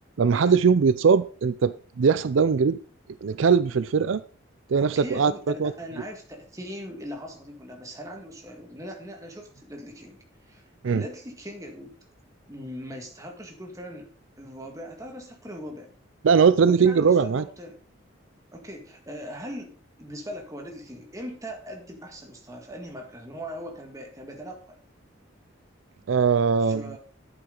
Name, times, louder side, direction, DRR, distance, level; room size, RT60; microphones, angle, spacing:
voice 1, 0.2-2.8 3.2-4.2 4.7-5.3 5.6-5.7 10.8-11.0 16.2-17.4 26.1-26.9, right 6 dB, 70° right, 0.4 m, -20 dB
voice 2, 4.8-10.2 10.5-12.0 12.5-14.1 14.4-15.9 16.6-17.8 18.5-24.8 26.6-27.0, equal, 15° right, 1.8 m, -40 dB
10.5 x 8.7 x 3.9 m
head